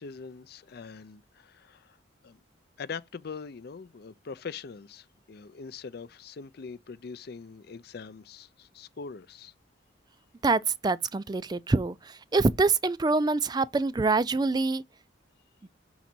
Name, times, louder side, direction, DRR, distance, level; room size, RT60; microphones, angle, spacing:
voice 1, 0.0-2.0 2.2-2.4 2.8-9.5, left 5 dB, 55° left, 0.4 m, -42 dB
voice 2, 10.4-14.8, right 3 dB, 20° right, 0.3 m, -25 dB
6.1 x 4.0 x 5.9 m
head